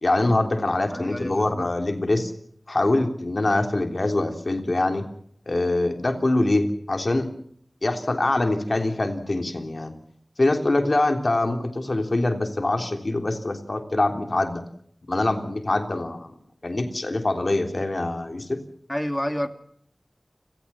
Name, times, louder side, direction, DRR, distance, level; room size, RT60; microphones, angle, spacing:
voice 1, 0.0-2.3 2.7-5.1 5.5-7.3 7.8-10.0 10.4-14.6 15.1-16.3 16.6-18.6, left 2 dB, 60° left, 5 dB, 3.4 m, -24 dB
voice 2, 0.9-1.7 18.9-19.5, equal, 10° left, 8 dB, 2.3 m, -29 dB
30.0 x 17.5 x 5.7 m, 0.65 s
wide cardioid pair, 60°, 0 cm